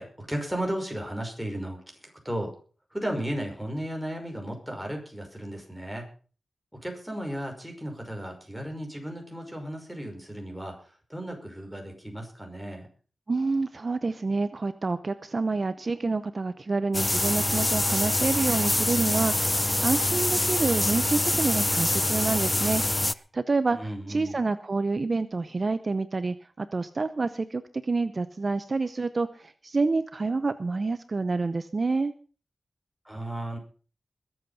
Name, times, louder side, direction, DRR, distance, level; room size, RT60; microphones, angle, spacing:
voice 1, 0.0-2.5 2.9-6.1 6.7-12.9 23.7-24.4 33.0-33.6, right 1 dB, 5° right, 2 dB, 5.6 m, -35 dB
voice 2, 13.3-22.8 23.1-23.8 24.1-32.1, right 3 dB, 45° right, 12 dB, 0.8 m, -28 dB
sound 1, 16.9-23.1, left 1 dB, 20° left, 0.6 m, -25 dB
21.5 x 8.0 x 5.7 m, 0.40 s
wide cardioid pair, 80°, 0 cm